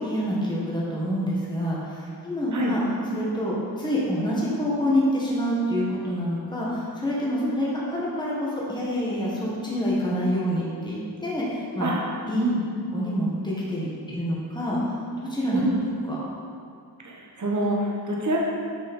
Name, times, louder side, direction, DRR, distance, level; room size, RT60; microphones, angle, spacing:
voice 1, 0.0-2.8 3.1-11.9 12.3-12.4 12.9-14.8 15.2-15.6 16.1-16.2, equal, 10° left, -6 dB, 1.6 m, -27 dB
voice 2, 15.5-15.8 17.0-18.4, right 1 dB, 50° right, -3 dB, 1.2 m, -26 dB
7.6 x 5.4 x 5.4 m, 2.3 s
wide cardioid pair, 90°, 39 cm